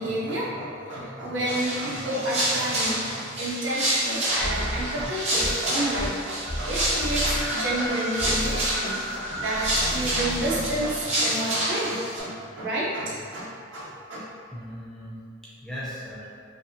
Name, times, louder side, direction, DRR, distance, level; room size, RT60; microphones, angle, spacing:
voice 1, 0.0-14.2, right 1 dB, 75° right, -6 dB, 0.7 m, -30 dB
sound 1, 1.5-12.2, right 1 dB, 35° right, 0.6 m, -28 dB
sound 2, 4.4-5.6 5.9-6.2 6.5-11.2, equal, 85° left, 0.8 m, -32 dB
voice 2, 14.5-16.3, equal, ahead, -7 dB, 0.3 m, -38 dB
2.6 x 2.5 x 2.5 m, 2.3 s
head